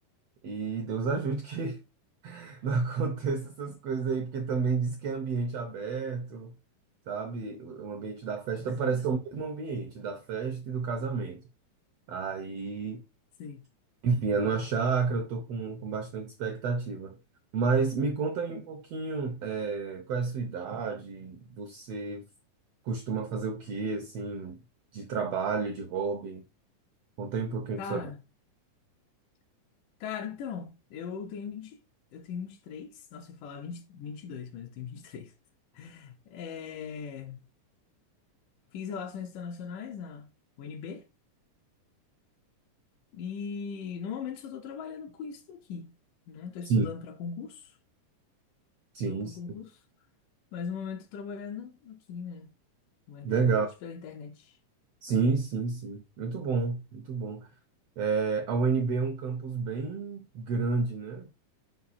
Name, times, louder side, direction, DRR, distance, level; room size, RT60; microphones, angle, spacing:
voice 1, 0.4-1.8 2.2-6.5 7.1-11.4 12.1-13.0 14.0-17.2 17.5-22.3 22.8-24.6 24.9-26.4 27.2-28.1 46.6-46.9 48.9-49.4 53.2-53.7 55.0-57.5 58.0-61.3, right 4 dB, 75° right, 1.5 m, -30 dB
voice 2, 27.8-28.2 30.0-31.8 32.1-35.3 35.7-37.5 38.7-40.3 40.6-41.0 43.1-45.9 46.3-47.8 49.1-49.7 50.5-52.5 53.1-54.6, left 6 dB, 80° left, 2.3 m, -39 dB
5.8 x 4.8 x 4.1 m
omnidirectional pair, 3.7 m